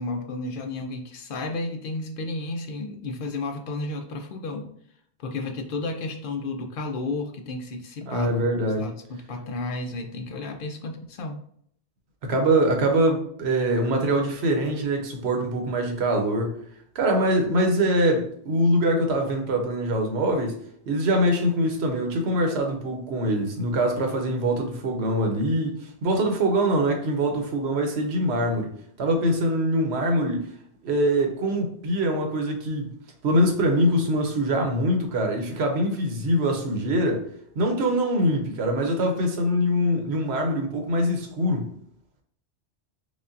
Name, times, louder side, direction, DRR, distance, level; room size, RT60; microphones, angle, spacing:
voice 1, 0.0-4.7 5.2-8.3 8.6-11.4, left 2 dB, 60° left, 4 dB, 0.6 m, -32 dB
voice 2, 8.0-8.9 12.2-16.6 16.9-20.6 20.9-25.7 26.0-28.7 29.0-30.5 30.8-32.9 33.2-37.2 37.6-41.7, right 1 dB, 75° right, 3 dB, 1.0 m, -23 dB
5.0 x 2.1 x 2.5 m, 0.66 s
omnidirectional pair, 1.1 m